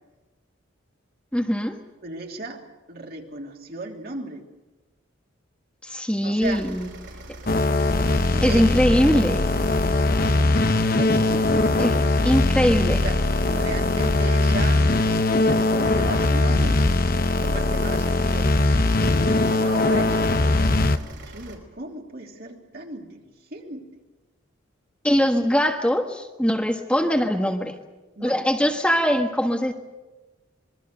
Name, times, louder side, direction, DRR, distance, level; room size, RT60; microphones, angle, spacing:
voice 1, 1.3-1.8 5.8-6.9 8.4-9.4 11.8-12.0 12.2-13.0 25.0-27.7 28.2-29.7, equal, 5° left, 3 dB, 1.4 m, -21 dB
voice 2, 2.0-2.6 2.9-4.4 6.2-6.7 8.0-8.7 11.0-12.0 13.0-13.2 13.4-14.8 15.1-16.8 17.4-18.5 18.9-20.3 21.3-23.9 28.1-28.4, right 2 dB, 50° right, 1 dB, 3.2 m, -36 dB
sound 1, 6.4-21.6, right 1 dB, 70° right, 5.2 m, -42 dB
sound 2, 7.5-21.0, left 2 dB, 50° left, 1.0 m, -21 dB
26.0 x 22.5 x 6.7 m, 1.2 s
head